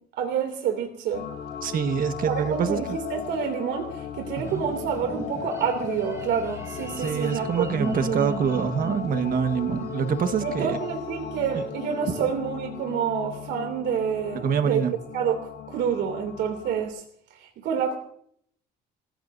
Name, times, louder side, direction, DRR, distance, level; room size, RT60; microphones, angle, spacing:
voice 1, 0.2-1.3 2.3-8.2 10.4-14.8 15.1-17.0 17.4-18.0, right 7 dB, 70° right, 3 dB, 2.8 m, -28 dB
sound 1, 1.1-16.9, left 9 dB, 70° left, 3.8 m, -37 dB
voice 2, 1.6-2.8 4.4-4.6 7.0-10.8 11.5-11.6 14.4-14.9, right 7 dB, 50° right, 9 dB, 1.5 m, -25 dB
sound 2, 4.4-10.4, right 2 dB, 15° right, 3.6 m, -38 dB
27.5 x 16.0 x 2.7 m, 0.65 s
cardioid pair, 120°, 19 cm